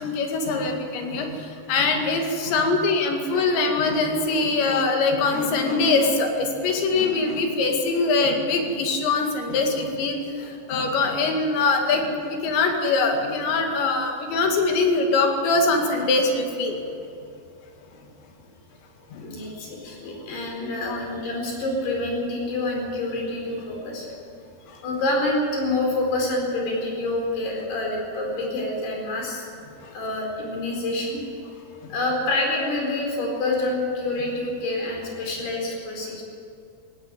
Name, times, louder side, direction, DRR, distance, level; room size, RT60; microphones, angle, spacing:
voice 1, 0.0-16.8 19.1-19.3 20.9-21.0 24.7-24.8 29.8-29.9 31.8-32.0, left 3 dB, 85° left, 3 dB, 4.5 m, -23 dB
voice 2, 19.2-24.1 24.8-29.5 29.9-31.2 31.9-36.2, left 2 dB, 65° left, 0 dB, 6.4 m, -27 dB
18.0 x 16.5 x 9.0 m, 2.6 s
omnidirectional pair, 5.0 m